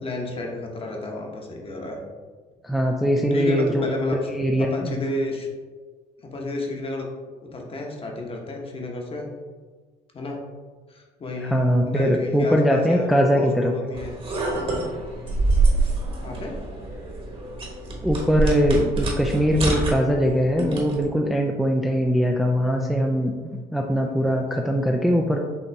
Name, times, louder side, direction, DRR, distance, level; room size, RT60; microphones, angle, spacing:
voice 1, 0.0-2.0 3.2-4.2 4.6-5.5 6.2-7.1 7.4-9.3 10.1-10.4 10.9-14.2 16.2-16.6, left 2 dB, 35° left, 0 dB, 1.0 m, -31 dB
voice 2, 2.6-3.9 4.1-4.9 11.4-13.7 18.0-23.3 23.7-25.4, equal, ahead, 1 dB, 0.3 m, -21 dB
sound 1, 13.9-21.0, right 3 dB, 35° right, 1.2 m, -26 dB
5.4 x 2.9 x 3.4 m, 1.4 s
cardioid pair, 110°, 17 cm